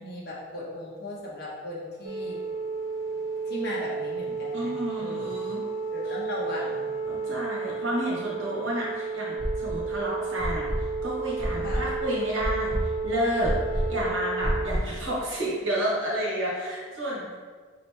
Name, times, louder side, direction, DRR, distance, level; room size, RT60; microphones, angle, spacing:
voice 1, 0.0-2.4 3.4-5.3 5.9-6.9 11.6-11.9, left 1 dB, 50° left, -5 dB, 1.1 m, -37 dB
sound 1, 2.0-14.7, right 4 dB, 40° right, 0.5 m, -32 dB
voice 2, 4.5-5.6 6.0-6.1 7.1-10.6 11.0-12.7 13.0-17.4, equal, 70° right, -5 dB, 1.3 m, -30 dB
sound 2, 9.4-10.0 10.4-15.0, equal, 15° left, 1.2 m, -30 dB
4.8 x 3.2 x 3.4 m, 1.5 s
head